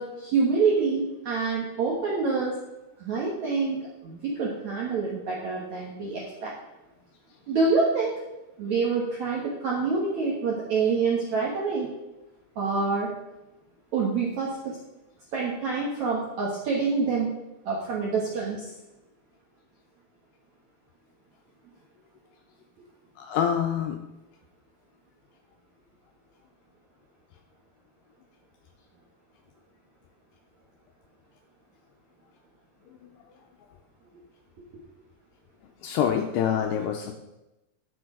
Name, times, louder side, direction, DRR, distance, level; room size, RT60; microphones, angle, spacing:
voice 1, 0.0-2.6 3.0-6.5 7.5-8.2 8.6-11.9 12.5-13.1 13.9-14.8 15.3-17.3 17.6-18.7, right 4 dB, 70° right, -3 dB, 1.7 m, -26 dB
voice 2, 23.2-24.0 35.8-37.1, left 8 dB, 90° left, 4 dB, 2.4 m, -26 dB
11.0 x 7.0 x 5.0 m, 0.97 s
omnidirectional pair, 5.4 m